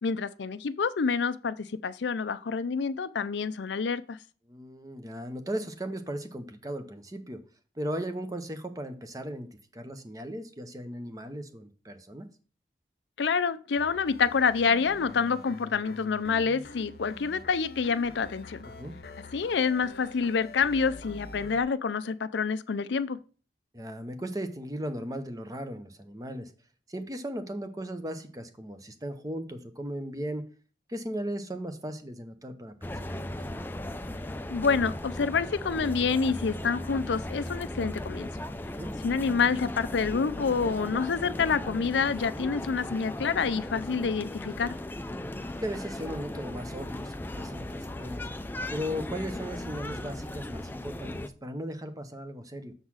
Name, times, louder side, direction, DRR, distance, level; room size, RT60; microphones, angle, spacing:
voice 1, 0.0-4.2 13.2-18.6 19.3-23.2 34.5-38.3 39.0-44.7, left 5 dB, 75° left, 0.5 m, -27 dB
voice 2, 4.5-7.4 7.8-9.5 9.7-12.3 18.8-18.9 23.7-26.5 26.9-30.5 30.9-33.3 38.8-38.9 45.6-48.3 48.7-52.7, equal, 20° right, 0.8 m, -37 dB
sound 1, 13.8-21.6, left 2 dB, 55° left, 0.8 m, -46 dB
sound 2, 32.8-51.3, left 1 dB, 10° left, 0.4 m, -37 dB
7.1 x 4.0 x 6.2 m
head